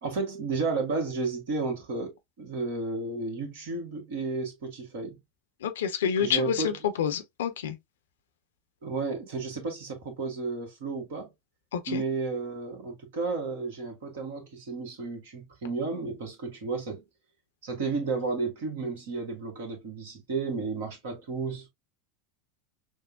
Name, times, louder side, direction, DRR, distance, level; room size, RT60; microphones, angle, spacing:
voice 1, 0.0-5.2 6.2-6.8 8.8-11.3 11.9-17.0 17.6-21.7, right 4 dB, 65° right, 1.4 m, -32 dB
voice 2, 5.6-6.7 7.0-7.8 11.7-12.0, left 8 dB, 70° left, 0.6 m, -28 dB
6.1 x 2.1 x 2.2 m
figure-of-eight pair, 80°, 0 cm